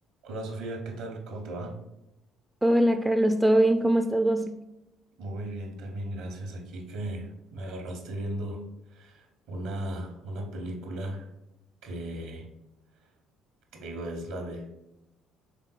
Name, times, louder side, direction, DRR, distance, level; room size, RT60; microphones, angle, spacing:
voice 1, 0.2-1.8 5.2-8.6 8.9-11.3 11.8-12.5 13.7-14.7, right 1 dB, 65° right, 1.0 m, -36 dB
voice 2, 2.6-4.6, right 1 dB, 10° right, 0.3 m, -22 dB
5.2 x 3.6 x 2.3 m
figure-of-eight pair, 50°, 0 cm